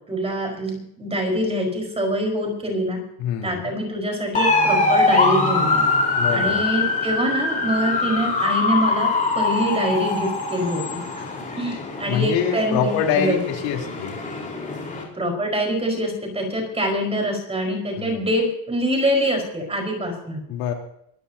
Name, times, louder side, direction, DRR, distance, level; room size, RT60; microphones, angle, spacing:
voice 1, 0.1-3.0 3.4-5.8 6.3-9.1 9.4-11.0 11.6-13.4 15.1-20.4, equal, 10° right, 1 dB, 4.8 m, -24 dB
voice 2, 3.2-3.7 6.2-6.6 12.0-14.2 18.0-18.2 20.5-20.7, left 8 dB, 75° left, 1 dB, 3.7 m, -25 dB
sound 1, 4.3-15.0, left 3 dB, 15° left, 4.3 m, -23 dB
23.0 x 16.5 x 2.9 m, 0.73 s
cardioid pair, 165°, 47 cm